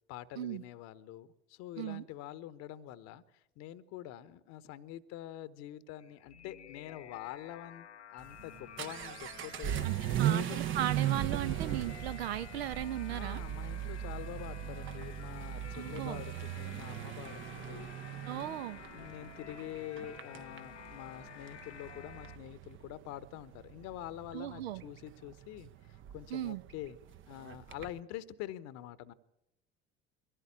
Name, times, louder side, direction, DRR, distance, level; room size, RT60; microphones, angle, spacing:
voice 1, 0.1-9.9 10.3-10.6 13.1-18.6 18.9-25.7 26.1-27.0 27.3-29.1, left 12 dB, 50° left, 1.0 m, -46 dB
sound 1, 6.0-22.4, left 9 dB, 80° left, 0.8 m, -51 dB
Vehicle / Accelerating revving vroom, 8.2-28.0, right 12 dB, 35° right, 0.8 m, -38 dB
voice 2, 9.8-13.4 15.7-16.2 18.3-18.8 24.3-24.8 26.3-26.6, right 12 dB, 70° right, 0.8 m, -37 dB
22.5 x 16.0 x 8.6 m
figure-of-eight pair, 60°, 33 cm